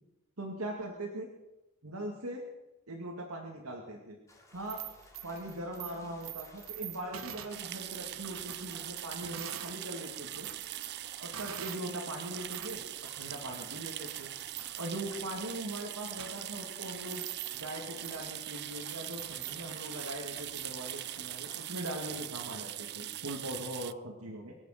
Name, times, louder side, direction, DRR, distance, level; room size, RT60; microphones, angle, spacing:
voice 1, 0.4-1.3 1.8-2.5 2.9-4.2 4.5-4.8 5.2-10.5 11.2-12.8 13.2-14.3 14.8-17.3 17.5-24.5, right 1 dB, 90° right, 1 dB, 2.3 m, -40 dB
sound 1, 4.3-22.7, left 1 dB, 15° left, 2.4 m, -57 dB
sound 2, 4.5-9.8 10.1-11.9 12.3-22.5, right 10 dB, 70° right, 1.1 m, -47 dB
sound 3, 7.5-23.9, right 14 dB, 50° right, 0.5 m, -42 dB
24.0 x 8.4 x 6.6 m, 0.98 s
head